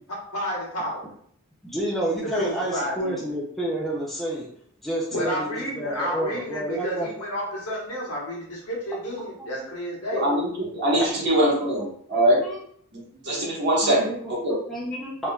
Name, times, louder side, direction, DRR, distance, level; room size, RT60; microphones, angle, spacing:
voice 1, 0.3-1.1 2.2-3.2 5.1-10.2, equal, 85° left, -4 dB, 1.2 m, -31 dB
voice 2, 1.6-4.5 4.8-7.1 9.2-9.7 11.0-11.2 11.5-12.6 13.8-15.3, right 1 dB, ahead, -5 dB, 0.4 m, -30 dB
voice 3, 10.1-12.4 12.9-14.6, right 1 dB, 50° right, -5 dB, 1.2 m, -23 dB
3.5 x 2.6 x 2.3 m, 0.63 s
head